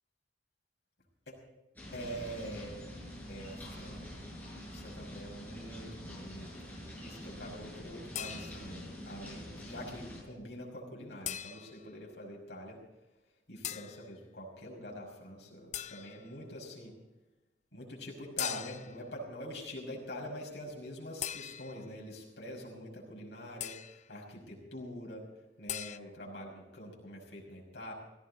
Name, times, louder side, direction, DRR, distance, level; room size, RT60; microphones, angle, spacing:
sound 1, 1.8-10.2, equal, 10° left, 7.1 m, -46 dB
voice 1, 1.9-2.8 3.3-4.1 4.7-6.7 7.0-12.8 13.5-17.0 17.7-25.3 25.6-27.9, equal, 75° left, -1 dB, 5.8 m, -45 dB
sound 2, 8.1-8.8 11.2-11.9 13.6-14.0 15.7-16.3 18.4-19.0 21.2-21.9 23.6-24.1 25.7-26.0, left 10 dB, 40° left, 0.4 m, -40 dB
17.5 x 16.0 x 4.1 m, 1.0 s
head